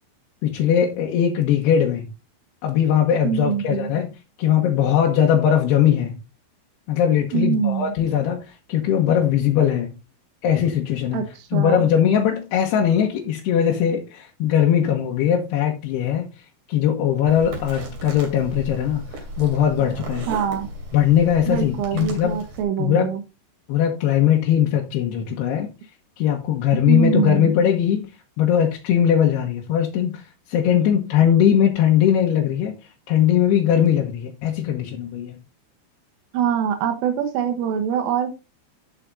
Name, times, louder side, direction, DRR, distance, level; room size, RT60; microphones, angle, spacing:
voice 1, 0.4-2.0 2.6-6.2 6.9-10.0 10.4-16.3 16.7-20.3 20.9-22.4 22.8-23.1 23.7-25.7 26.2-28.1 28.4-30.2 30.5-32.7 33.1-35.4, left 9 dB, 75° left, 2.7 m, -20 dB
voice 2, 3.2-3.9 7.3-7.9 11.1-11.9 20.3-20.7 21.5-23.2 26.9-27.5 36.3-38.3, right 8 dB, 85° right, 3.5 m, -24 dB
sound 1, 17.3-22.6, right 1 dB, 50° right, 4.1 m, -35 dB
14.5 x 5.8 x 2.6 m
omnidirectional pair, 5.7 m